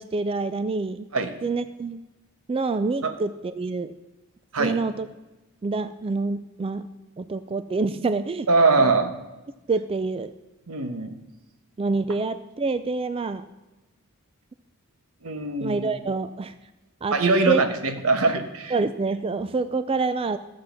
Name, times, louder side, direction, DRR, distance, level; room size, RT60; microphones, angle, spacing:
voice 1, 0.0-1.1 1.4-2.0 2.5-3.9 4.6-5.1 5.6-6.9 7.2-8.5 8.8-8.9 9.7-10.3 11.8-13.4 15.6-16.5 17.0-17.2 17.5-17.6 18.7-20.4, right 3 dB, 25° right, 12 dB, 0.3 m, -26 dB
voice 2, 8.5-9.1 10.7-11.1 15.2-15.9 17.1-18.7, right 3 dB, 80° right, 8 dB, 1.2 m, -22 dB
13.0 x 7.6 x 5.7 m, 1.1 s
head